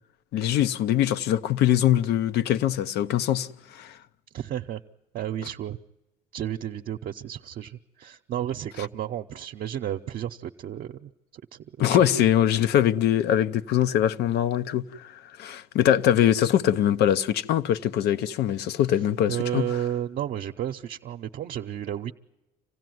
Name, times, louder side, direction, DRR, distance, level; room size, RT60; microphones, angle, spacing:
voice 1, 0.3-4.0 11.8-19.6, left 11 dB, 75° left, 0.7 m, -23 dB
voice 2, 4.3-4.8 5.1-5.8 6.3-12.2 19.3-22.1, right 11 dB, 60° right, 0.8 m, -32 dB
26.5 x 16.0 x 9.3 m
cardioid pair, 110°, 17 cm